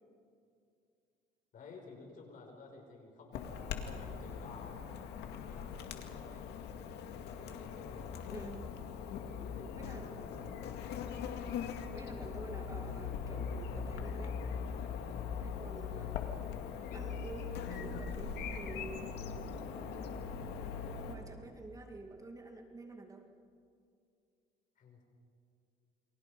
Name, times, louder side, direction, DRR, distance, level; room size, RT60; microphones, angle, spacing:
voice 1, 1.5-4.9 5.3-6.5 7.1-8.5 9.4-10.4 15.9-17.0 24.8-25.0, left 4 dB, 55° left, 2 dB, 6.4 m, -54 dB
Chirp tweet / Buzz, 3.3-21.2, left 6 dB, 80° left, 2.2 m, -41 dB
voice 2, 8.3-8.7 9.7-10.3 11.9-14.4 15.4-16.2 16.9-19.2 21.1-23.3, right 2 dB, 20° right, 3 dB, 2.3 m, -49 dB
29.5 x 24.5 x 5.4 m, 2.4 s
cardioid pair, 110°, 17 cm